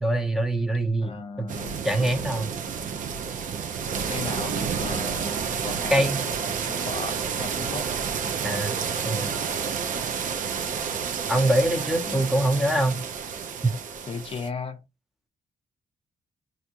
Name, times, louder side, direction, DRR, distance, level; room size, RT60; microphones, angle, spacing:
voice 1, 0.0-1.5 1.8-2.5 5.9-6.2 8.4-8.8 9.0-9.3 11.3-13.0 13.6-13.8, right 1 dB, ahead, 0.7 m, -24 dB
voice 2, 1.0-1.8 4.1-7.9 12.1-12.3 14.1-14.8, left 4 dB, 40° left, 0.6 m, -36 dB
sound 1, 1.5-14.5, right 6 dB, 65° right, 0.6 m, -30 dB
3.5 x 2.6 x 2.8 m
cardioid pair, 130°, 15 cm